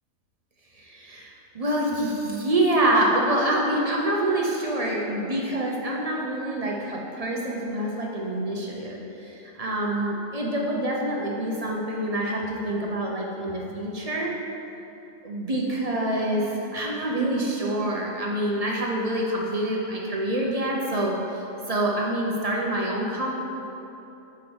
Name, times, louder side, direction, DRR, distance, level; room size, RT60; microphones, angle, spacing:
voice 1, 0.7-14.3 15.2-23.3, right 1 dB, 40° right, -2 dB, 0.6 m, -26 dB
5.1 x 4.7 x 6.1 m, 3.0 s
omnidirectional pair, 1.4 m